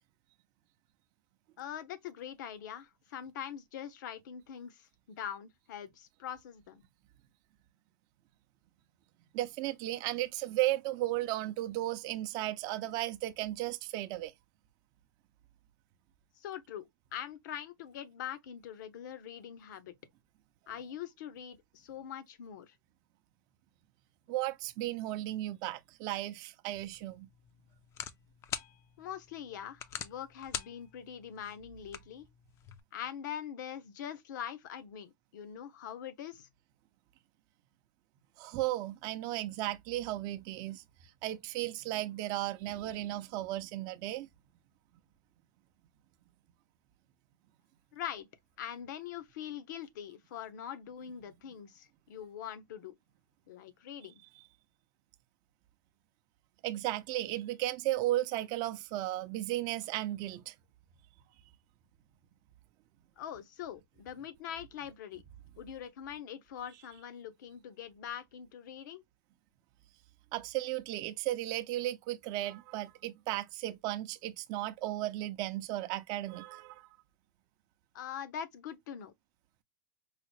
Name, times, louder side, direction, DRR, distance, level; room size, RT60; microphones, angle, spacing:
voice 1, 1.6-6.8 16.4-19.9 20.7-22.7 29.0-32.3 32.9-36.5 47.9-48.3 48.6-52.9 53.5-54.1 63.2-65.2 65.6-69.0 77.9-79.1, left 9 dB, 70° left, 0.8 m, -43 dB
voice 2, 9.3-14.3 24.3-27.3 38.4-40.8 41.2-44.3 56.6-60.5 70.3-76.9, right 15 dB, 40° right, 0.5 m, -35 dB
sound 1, 26.7-32.8, left 8 dB, 25° left, 0.4 m, -45 dB
4.7 x 2.0 x 3.0 m
supercardioid pair, 140°, 10 cm